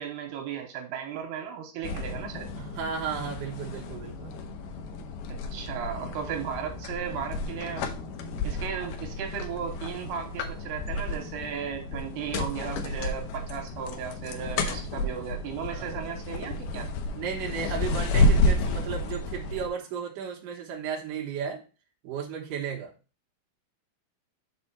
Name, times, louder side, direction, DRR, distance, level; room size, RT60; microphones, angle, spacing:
voice 1, 0.0-2.5 5.5-7.9 8.4-16.9, right 8 dB, 85° right, 3 dB, 3.1 m, -35 dB
sound 1, 1.8-19.7, left 2 dB, 80° left, 1.9 m, -31 dB
voice 2, 2.5-4.3 15.7-15.9 17.1-21.6 22.0-22.9, right 7 dB, 65° right, 0 dB, 2.7 m, -34 dB
6.2 x 4.5 x 4.2 m, 0.35 s
omnidirectional pair, 4.6 m